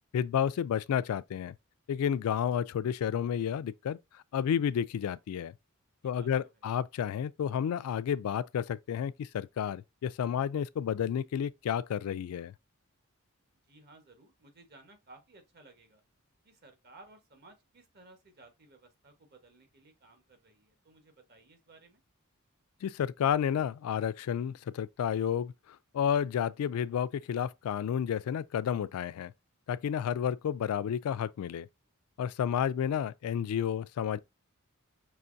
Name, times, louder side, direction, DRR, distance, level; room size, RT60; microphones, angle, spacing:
voice 1, 0.1-1.5 1.9-5.5 6.0-12.5 22.8-29.3 29.7-31.7 32.2-34.2, left 8 dB, 80° left, 0.3 m, -31 dB
voice 2, 6.0-6.5 13.7-16.0 16.4-22.0, right 2 dB, 50° right, 1.2 m, -58 dB
5.6 x 3.0 x 2.6 m
head